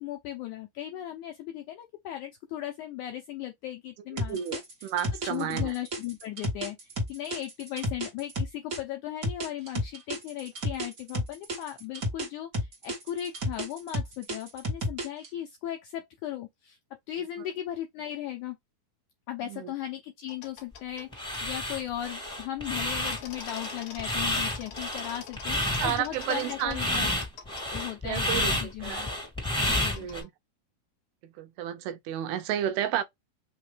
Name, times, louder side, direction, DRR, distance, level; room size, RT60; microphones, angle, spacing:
voice 1, 0.0-4.6 5.2-6.8 7.1-16.8 17.1-18.6 19.3-27.1 27.6-29.1 29.7-30.1, left 12 dB, 80° left, 1.7 m, -37 dB
voice 2, 4.1-5.7 17.4-17.5 19.4-19.7 25.7-26.8 28.0-29.0 29.8-30.3 31.2-33.0, right 11 dB, 85° right, 2.6 m, -32 dB
sound 1, 4.2-8.8 9.2-12.3 12.5-15.3, equal, 55° right, 0.9 m, -31 dB
sound 2, 20.3-21.1 21.3-21.4 23.1-27.9 28.2-28.3 30.0-30.3, left 7 dB, 60° left, 2.2 m, -46 dB
sound 3, 21.1-30.2, left 1 dB, 5° left, 1.0 m, -30 dB
5.7 x 2.2 x 3.2 m
omnidirectional pair, 4.3 m